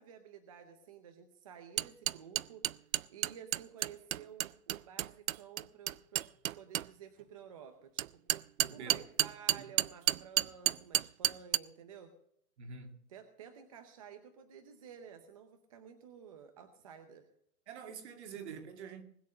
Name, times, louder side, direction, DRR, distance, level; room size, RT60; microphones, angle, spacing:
voice 1, 0.0-6.3 6.5-8.0 8.7-12.1 13.1-17.3, right 7 dB, 25° right, 0.7 m, -52 dB
sound 1, 1.8-6.9 8.0-11.6, right 13 dB, 65° right, 0.5 m, -31 dB
voice 2, 8.6-9.0 9.6-9.7 12.6-13.0 17.7-19.0, right 6 dB, 45° right, 2.3 m, -46 dB
20.5 x 8.1 x 6.5 m
hypercardioid pair, 175°, 45 cm